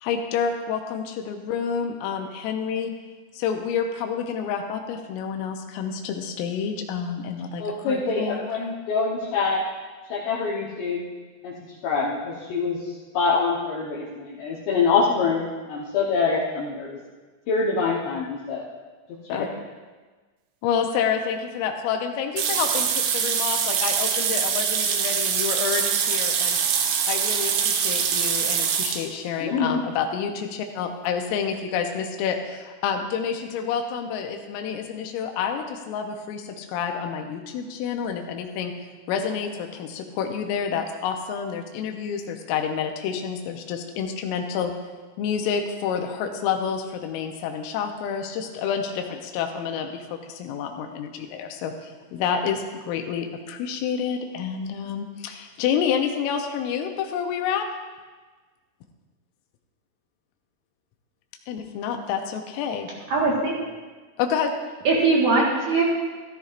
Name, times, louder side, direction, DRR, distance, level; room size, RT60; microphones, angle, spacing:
voice 1, 0.0-2.9 3.3-8.4 19.3-19.5 20.6-26.6 27.1-38.7 39.1-44.7 45.2-57.6 61.5-62.9 64.2-64.5, left 7 dB, 90° left, 4 dB, 3.4 m, -28 dB
voice 2, 7.6-9.6 10.1-11.1 11.4-11.6 11.8-17.0 17.5-18.6 19.1-19.5 29.4-29.8, left 4 dB, 70° left, -5 dB, 3.0 m, -25 dB
sound 1, 22.4-29.0, right 7 dB, 80° right, 3.4 m, -24 dB
voice 3, 63.1-63.6 64.8-65.8, right 3 dB, 60° right, -3 dB, 2.5 m, -20 dB
14.0 x 13.5 x 2.5 m, 1.4 s
omnidirectional pair, 5.7 m